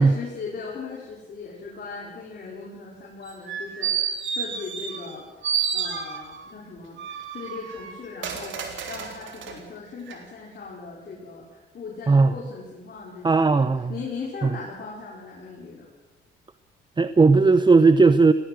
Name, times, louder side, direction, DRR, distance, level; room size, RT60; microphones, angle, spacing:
voice 1, 0.0-5.2 5.7-7.0 7.3-15.9, left 4 dB, 50° left, -4 dB, 5.2 m, -38 dB
sound 1, 3.3-5.2 5.4-6.5 7.0-9.6 10.1-10.2, right 7 dB, 70° right, 3.7 m, -30 dB
voice 2, 13.2-13.9 17.0-18.3, right 4 dB, 25° right, 12 dB, 0.8 m, -16 dB
18.5 x 18.0 x 8.0 m, 1.1 s
cardioid pair, 90°, 20 cm